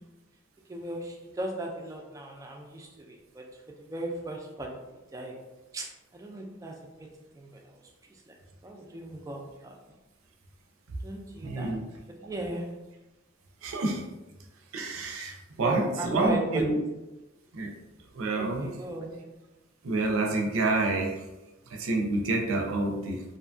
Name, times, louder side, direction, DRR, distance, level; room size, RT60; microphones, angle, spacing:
voice 1, 0.7-4.8 5.1-5.4 5.7-7.1 7.3-7.8 8.1-8.3 8.6-10.0 11.0-11.8 12.2-12.7 15.6-16.6 18.3-19.2, right 1 dB, 15° right, 0 dB, 0.3 m, -37 dB
voice 2, 11.4-11.8 13.6-14.0 14.7-16.8 17.5-17.7 18.1-18.7 19.8-21.2 21.7-23.2, right 2 dB, 85° right, 2 dB, 0.5 m, -28 dB
2.7 x 2.2 x 2.5 m, 1.0 s
head